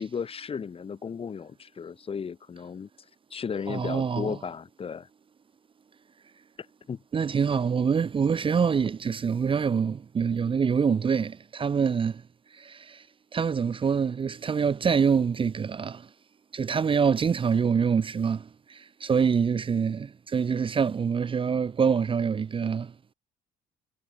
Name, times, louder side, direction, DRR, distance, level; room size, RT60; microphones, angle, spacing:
voice 1, 0.0-2.9 3.3-5.1 6.9-7.0, left 6 dB, 35° left, 2.1 m, -34 dB
voice 2, 3.7-4.4 7.1-12.2 12.5-13.1 13.3-16.1 16.5-22.9, right 6 dB, 30° right, 1.0 m, -25 dB
cardioid pair, 110°, 17 cm